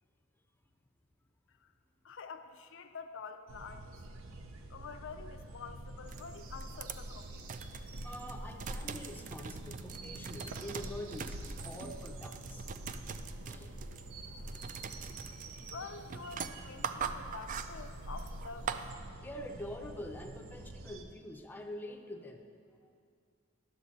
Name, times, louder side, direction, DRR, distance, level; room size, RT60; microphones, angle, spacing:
voice 1, 2.0-3.9 4.7-7.5 15.7-18.8, left 5 dB, 65° left, 8 dB, 0.5 m, -47 dB
sound 1, 3.5-21.0, right 1 dB, 90° right, 0.6 m, -46 dB
sound 2, 6.1-18.9, right 6 dB, 40° right, 0.3 m, -43 dB
voice 2, 8.0-12.7 13.4-13.7 19.2-22.5 22.8-22.9, left 1 dB, 10° left, 3 dB, 0.5 m, -45 dB
10.5 x 6.9 x 4.1 m, 2.3 s
head